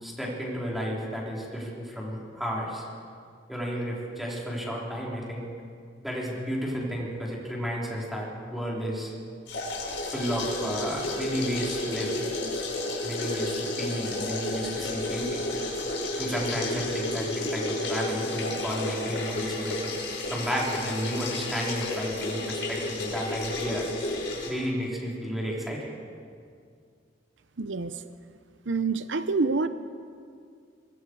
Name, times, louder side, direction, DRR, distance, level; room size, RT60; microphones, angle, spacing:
voice 1, 0.0-2.8 3.5-5.5 6.0-9.1 10.1-12.2 13.0-15.4 16.2-19.9 20.3-23.9 24.5-25.9, equal, ahead, -5 dB, 4.4 m, -32 dB
sound 1, 9.5-24.5, left 2 dB, 75° left, 5.6 m, -32 dB
voice 2, 27.6-27.9 28.7-29.7, right 3 dB, 85° right, 11 dB, 0.7 m, -26 dB
24.0 x 22.5 x 4.9 m, 2.2 s
head